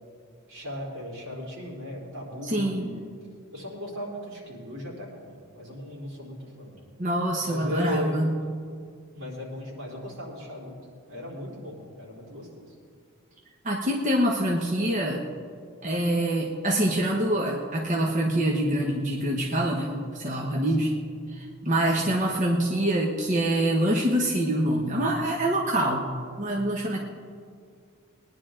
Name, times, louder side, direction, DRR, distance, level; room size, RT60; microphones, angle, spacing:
voice 1, 0.5-3.0 3.5-6.8 7.4-8.2 9.1-10.8 11.1-12.7 20.8-20.9 21.9-22.1, left 1 dB, 80° right, -4 dB, 3.8 m, -37 dB
voice 2, 2.4-2.9 7.0-8.3 13.6-15.2 15.8-20.9 21.3-26.1 26.4-27.0, right 1 dB, 40° right, -1 dB, 1.1 m, -25 dB
20.5 x 10.5 x 3.8 m, 2.2 s
head